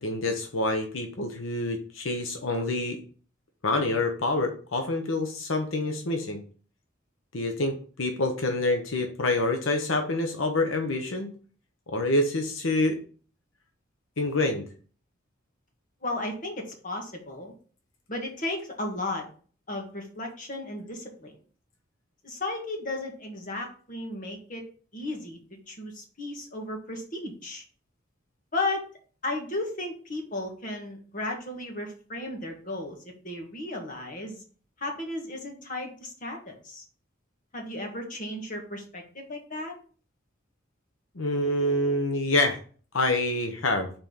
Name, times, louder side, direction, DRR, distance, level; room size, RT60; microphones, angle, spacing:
voice 1, 0.0-3.0 3.6-6.4 7.3-11.3 11.9-13.0 14.2-14.7 41.1-42.6 42.9-43.9, left 2 dB, 85° left, 5 dB, 0.9 m, -27 dB
voice 2, 16.0-17.5 18.1-19.2 19.7-21.3 22.2-24.6 24.9-27.6 28.5-28.9 29.2-33.0 33.2-34.4 34.8-36.8 37.5-39.7, left 2 dB, 40° left, 2 dB, 1.6 m, -34 dB
5.4 x 4.4 x 5.7 m, 0.42 s
head